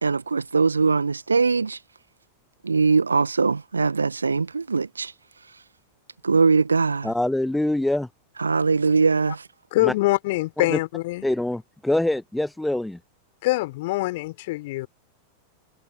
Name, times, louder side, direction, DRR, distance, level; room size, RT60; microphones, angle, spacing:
voice 1, 0.0-1.8 2.6-5.1 6.2-7.1 8.4-9.5, right 4 dB, 75° right, 1.9 m, -21 dB
voice 2, 7.0-8.1 9.8-9.9 10.7-10.8 11.2-13.0, left 1 dB, 5° left, 0.4 m, -24 dB
voice 3, 9.7-11.3 13.4-14.9, left 20 dB, 50° left, 5.0 m, -24 dB
figure-of-eight pair, 90°, 0 cm